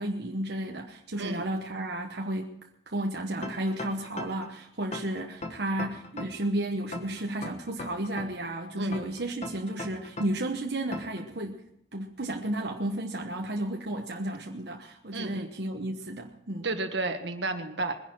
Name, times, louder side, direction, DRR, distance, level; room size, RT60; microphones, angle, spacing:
voice 1, 0.0-2.5 2.9-11.6 11.9-16.7, right 1 dB, 70° right, 1 dB, 1.2 m, -33 dB
sound 1, 3.4-4.5 4.9-6.5 6.9-8.5 8.9-10.5 10.9-11.2, left 2 dB, 40° left, 1.5 m, -38 dB
voice 2, 15.1-15.5 16.6-17.9, right 2 dB, 85° right, 6 dB, 1.7 m, -31 dB
22.0 x 10.5 x 4.7 m, 0.77 s
head